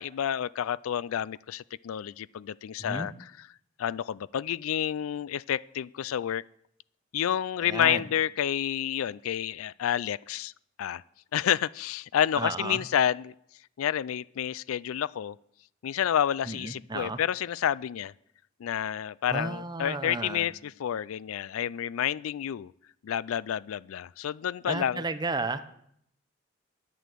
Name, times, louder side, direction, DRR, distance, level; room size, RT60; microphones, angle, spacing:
voice 1, 0.0-3.3 3.8-6.4 7.1-10.5 10.8-11.0 11.3-13.3 13.8-15.4 15.8-18.1 18.6-22.7 23.0-25.0, left 10 dB, 85° left, 21 dB, 0.4 m, -29 dB
voice 2, 7.6-8.0 12.4-12.8 16.5-17.2 19.3-20.5 24.7-25.6, right 3 dB, 20° right, 10 dB, 0.7 m, -33 dB
11.0 x 8.2 x 7.6 m, 0.70 s
head